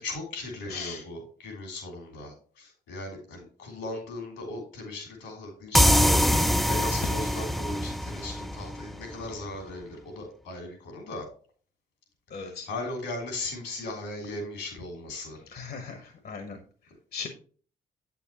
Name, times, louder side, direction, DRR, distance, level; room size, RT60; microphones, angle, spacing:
voice 1, 0.0-5.9 6.6-11.3 12.3-15.4, left 2 dB, 85° left, 2 dB, 3.2 m, -38 dB
voice 2, 0.7-1.1 12.3-12.7 15.5-16.6 17.1-17.3, left 5 dB, 60° left, 6 dB, 1.1 m, -38 dB
sound 1, 5.7-9.3, equal, ahead, 0.4 m, -24 dB
8.2 x 7.0 x 2.9 m, 0.44 s
supercardioid pair, 55°, 18 cm